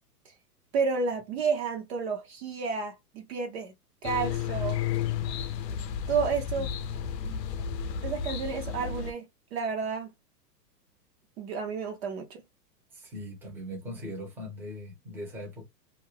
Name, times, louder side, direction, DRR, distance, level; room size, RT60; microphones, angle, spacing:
voice 1, 0.7-3.7 4.0-4.8 6.1-6.7 8.0-9.2 9.5-10.1 11.4-12.4, right 5 dB, 40° right, 0.6 m, -31 dB
sound 1, 4.0-9.1, left 8 dB, 80° left, 0.6 m, -32 dB
voice 2, 12.9-15.6, equal, 5° right, 0.7 m, -40 dB
2.4 x 2.1 x 3.2 m
hypercardioid pair, 135°, 49 cm